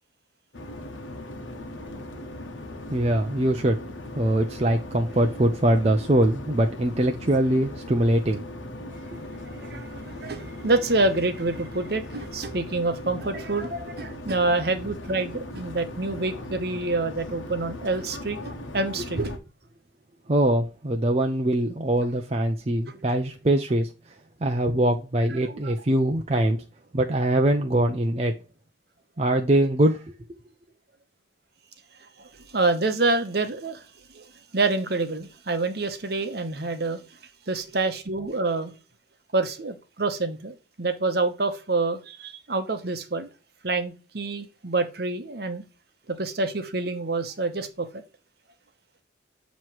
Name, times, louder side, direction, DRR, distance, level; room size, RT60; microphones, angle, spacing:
sound 1, 0.5-19.4, left 1 dB, 85° left, 1.1 m, -39 dB
voice 1, 2.9-3.8 4.1-8.4 20.3-23.9 24.4-26.6 26.9-28.3 29.2-30.1, right 1 dB, 30° right, 0.5 m, -22 dB
voice 2, 9.4-19.4 22.9-23.0 25.4-25.7 32.2-33.8 34.1-37.0 37.5-38.7 39.3-43.3 43.6-45.6 46.1-47.9, right 3 dB, 55° right, 0.9 m, -27 dB
7.3 x 3.1 x 4.5 m
head